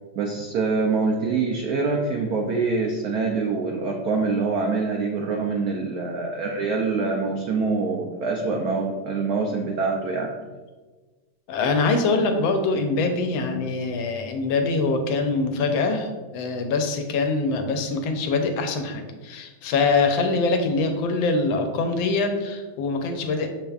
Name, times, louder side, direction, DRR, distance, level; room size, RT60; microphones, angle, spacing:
voice 1, 0.2-10.3, right 4 dB, 85° right, 1 dB, 0.8 m, -25 dB
voice 2, 11.5-23.5, left 3 dB, 80° left, 5 dB, 1.4 m, -24 dB
6.7 x 3.4 x 2.3 m, 1.3 s
omnidirectional pair, 2.1 m